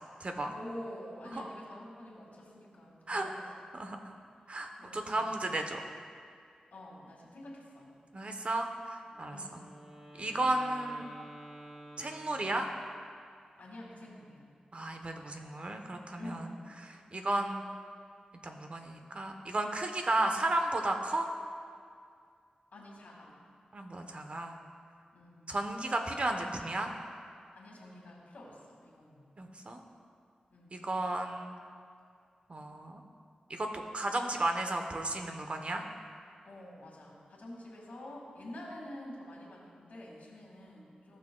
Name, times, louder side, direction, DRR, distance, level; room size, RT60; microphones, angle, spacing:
voice 1, 0.4-3.5 4.8-5.3 6.7-7.9 9.3-9.7 13.6-14.5 16.2-16.7 22.7-23.4 25.1-25.5 27.5-29.2 30.5-30.9 36.4-41.2, left 1 dB, 75° left, -3 dB, 2.0 m, -48 dB
voice 2, 3.8-4.1 4.5-5.8 8.1-9.4 10.2-11.1 12.0-12.7 14.7-16.5 17.1-17.6 18.4-21.3 23.7-24.5 25.5-26.9 29.4-29.8 30.7-31.5 32.5-33.0 33.5-35.8, right 2 dB, 45° right, 4 dB, 0.9 m, -33 dB
Wind instrument woodwind instrument, 9.1-13.2, right 1 dB, 15° right, 2.0 m, -51 dB
15.0 x 6.2 x 2.3 m, 2.3 s
cardioid pair, 55°, 3 cm